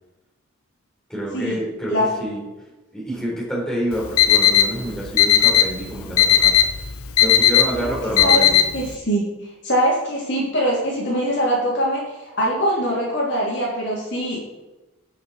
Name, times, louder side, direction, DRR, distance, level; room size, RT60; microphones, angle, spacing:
voice 1, 1.1-2.4 2.9-6.7 7.2-8.6, equal, 5° left, -6 dB, 4.3 m, -28 dB
Alarm, 3.9-8.9, left 10 dB, 85° left, 0.9 m, -17 dB
voice 2, 7.5-8.0 8.2-8.4 8.7-9.2 9.6-12.1 12.4-14.4, equal, 55° left, -4 dB, 3.3 m, -22 dB
19.5 x 6.6 x 4.4 m, 1.1 s
head